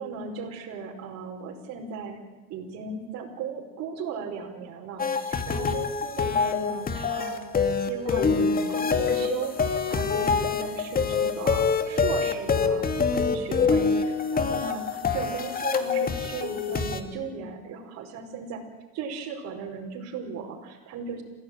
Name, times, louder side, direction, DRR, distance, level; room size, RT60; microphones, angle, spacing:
voice 1, 0.0-2.2 2.5-7.4 7.8-12.9 13.2-18.6 18.9-21.2, right 5 dB, 55° right, -1 dB, 5.2 m, -37 dB
sound 1, 5.0-17.0, left 5 dB, 30° left, 2.4 m, -25 dB
28.5 x 16.0 x 9.4 m, 1.2 s
supercardioid pair, 110°, 30 cm